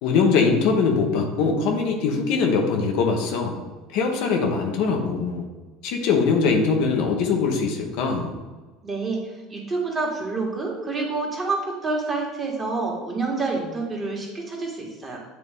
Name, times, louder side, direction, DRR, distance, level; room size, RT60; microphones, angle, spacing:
voice 1, 0.0-3.6 3.9-5.5 5.8-8.3, left 5 dB, 60° left, 2 dB, 0.9 m, -22 dB
voice 2, 8.8-9.2 9.5-15.2, right 3 dB, 30° right, -2 dB, 1.8 m, -28 dB
8.4 x 3.1 x 3.6 m, 1.3 s
figure-of-eight pair, 70°, 0 cm